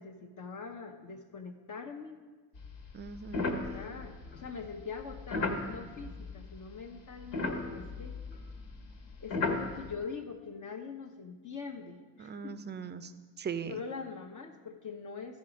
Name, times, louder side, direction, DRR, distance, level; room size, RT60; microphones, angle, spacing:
voice 1, 0.0-2.2 3.5-8.1 9.2-12.6 13.7-15.4, left 5 dB, 40° left, 4 dB, 1.0 m, -43 dB
sound 1, 2.5-6.8 7.0-9.9, left 3 dB, 70° left, 1.6 m, -36 dB
voice 2, 2.9-3.7 12.2-13.1 13.4-13.8, right 6 dB, 25° right, 12 dB, 0.5 m, -39 dB
13.5 x 4.9 x 5.2 m, 1.4 s
supercardioid pair, 90°, 46 cm